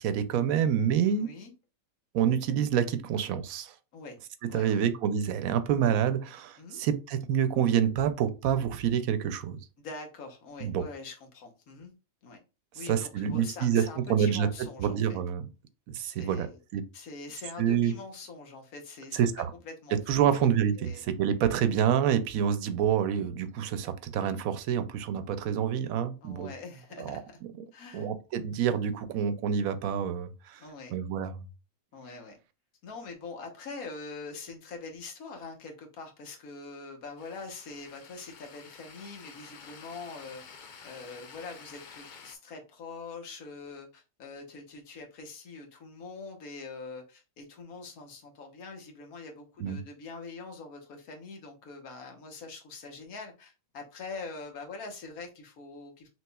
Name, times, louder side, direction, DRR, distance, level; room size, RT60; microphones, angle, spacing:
voice 1, 0.0-1.3 2.1-3.7 4.5-9.6 10.6-10.8 12.9-14.5 14.8-15.4 15.9-16.5 16.7-16.8 17.6-17.9 19.1-19.5 20.1-26.5 27.0-27.2 27.9-30.6 30.9-31.3 49.6-49.8, right 8 dB, 85° right, 1.0 m, -27 dB
voice 2, 1.0-1.5 3.9-4.2 4.5-4.9 6.6-6.8 9.8-11.9 12.2-12.4 12.7-15.2 16.1-16.6 16.9-19.2 19.6-20.5 20.8-21.0 26.2-27.3 27.7-28.1 30.6-30.9 31.9-32.4 32.8-40.4 40.8-56.1, left 4 dB, 85° left, 1.5 m, -44 dB
sound 1, 37.2-42.4, left 5 dB, 50° left, 0.6 m, -50 dB
6.0 x 3.0 x 2.3 m
omnidirectional pair, 1.5 m